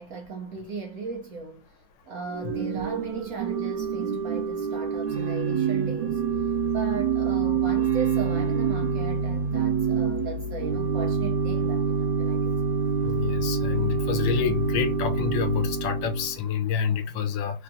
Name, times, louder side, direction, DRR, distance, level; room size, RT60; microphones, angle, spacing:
voice 1, 0.0-1.8 2.0-12.5, right 4 dB, 65° right, 0.9 m, -37 dB
Organ / Church bell, 2.3-16.4, right 6 dB, 85° right, 1.4 m, -26 dB
voice 2, 13.0-17.6, left 7 dB, 80° left, 1.4 m, -27 dB
3.5 x 2.3 x 2.6 m
omnidirectional pair, 2.1 m